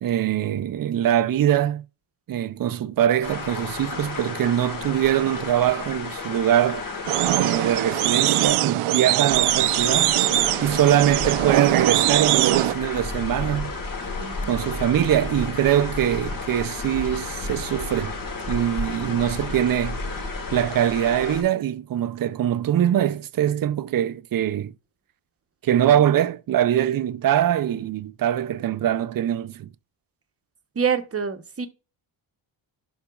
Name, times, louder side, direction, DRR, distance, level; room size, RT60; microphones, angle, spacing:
voice 1, 0.0-1.8 2.3-6.9 7.4-13.7 14.5-18.1 18.5-20.0 20.5-24.7 25.6-29.7, right 11 dB, 45° right, 0.5 m, -23 dB
sound 1, 3.2-8.6 9.3-21.4, left 3 dB, 40° left, 1.6 m, -32 dB
sound 2, 7.1-12.7, right 14 dB, 85° right, 0.6 m, -22 dB
voice 2, 14.2-14.6 30.8-31.7, right 6 dB, 30° right, 0.9 m, -27 dB
11.5 x 4.1 x 2.3 m
wide cardioid pair, 175°, 49 cm